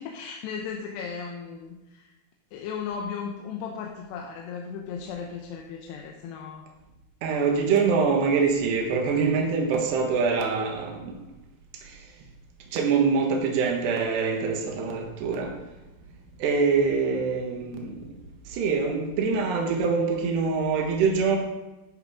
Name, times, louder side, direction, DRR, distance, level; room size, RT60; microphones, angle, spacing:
voice 1, 0.0-2.1 2.5-6.7, left 6 dB, 80° left, 1 dB, 3.0 m, -36 dB
voice 2, 7.2-11.2 11.8-12.0 12.7-15.6 16.4-18.1 18.5-21.4, right 5 dB, 75° right, 1 dB, 3.6 m, -24 dB
13.5 x 9.8 x 3.7 m, 1.0 s
omnidirectional pair, 4.9 m